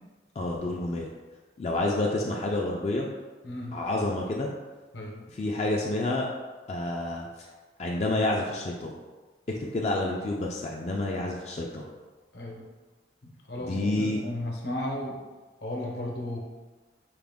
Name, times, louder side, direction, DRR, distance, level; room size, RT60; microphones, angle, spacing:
voice 1, 0.4-1.1 1.6-3.1 3.7-4.5 5.3-6.3 6.7-7.5 7.8-8.9 9.7-11.9 13.6-14.2, left 2 dB, 35° left, -1 dB, 0.3 m, -29 dB
voice 2, 3.4-3.8 4.9-5.3 12.3-12.7 13.2-15.2 15.6-16.4, left 1 dB, 65° left, -1 dB, 0.7 m, -35 dB
4.8 x 2.1 x 3.4 m, 1.3 s
head